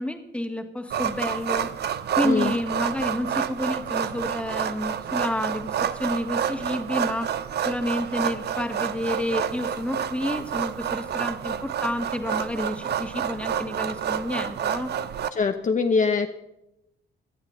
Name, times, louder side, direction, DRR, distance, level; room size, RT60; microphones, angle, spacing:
voice 1, 0.0-1.7 2.2-7.3 7.6-14.9, left 1 dB, 5° left, 5 dB, 1.8 m, -29 dB
sound 1, 0.9-15.3, right 9 dB, 55° right, 0.8 m, -29 dB
voice 2, 15.3-16.3, left 4 dB, 40° left, 5 dB, 0.9 m, -23 dB
18.5 x 12.0 x 3.9 m, 0.88 s
cardioid pair, 90°, 20 cm